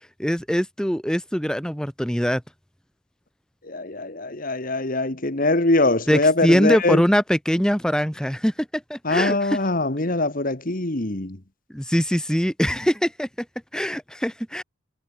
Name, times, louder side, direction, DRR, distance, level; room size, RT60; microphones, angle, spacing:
voice 1, 0.2-2.4 6.1-9.6 11.7-13.3 13.7-14.6, equal, 5° left, 1.5 m, -22 dB
voice 2, 3.6-7.0 9.0-11.4, left 2 dB, 40° left, 1.8 m, -22 dB
head